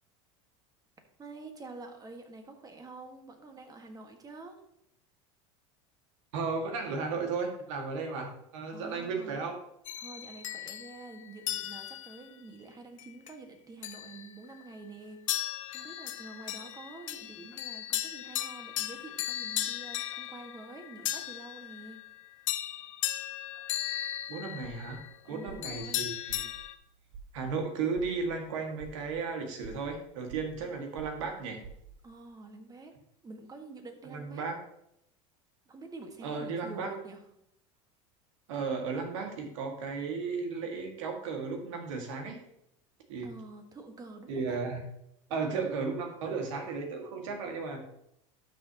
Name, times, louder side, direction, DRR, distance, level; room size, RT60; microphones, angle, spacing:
voice 1, 1.2-4.6 8.7-9.4 10.0-22.0 25.2-26.1 32.0-32.9 33.2-34.5 35.7-37.2 43.2-44.6, right 3 dB, 25° right, 4 dB, 1.7 m, -47 dB
voice 2, 6.3-9.6 24.3-25.0 25.3-26.4 27.3-31.6 34.0-34.6 36.2-36.9 38.5-42.4 43.1-43.3 44.3-44.8 45.3-47.8, right 4 dB, 75° right, 3 dB, 2.0 m, -34 dB
sound 1, 9.9-12.2 13.0-13.3 13.8-14.7 15.3-26.7, left 12 dB, 90° left, 0.6 m, -37 dB
sound 2, 24.2-32.2, right 5 dB, 60° right, 1.3 m, -50 dB
12.0 x 6.3 x 3.0 m, 0.76 s
supercardioid pair, 105°, 16 cm